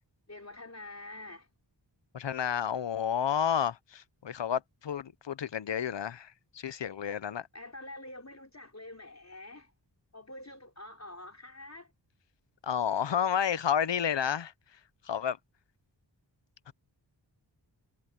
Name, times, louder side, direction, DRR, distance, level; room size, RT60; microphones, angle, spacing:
voice 1, 0.3-1.5 7.5-9.7 10.1-11.9, left 2 dB, 35° left, 4.6 m, -46 dB
voice 2, 2.1-7.5 12.6-14.5 15.1-15.4 16.7-16.8, left 8 dB, 75° left, 0.8 m, -31 dB
wide cardioid pair, 75°, 44 cm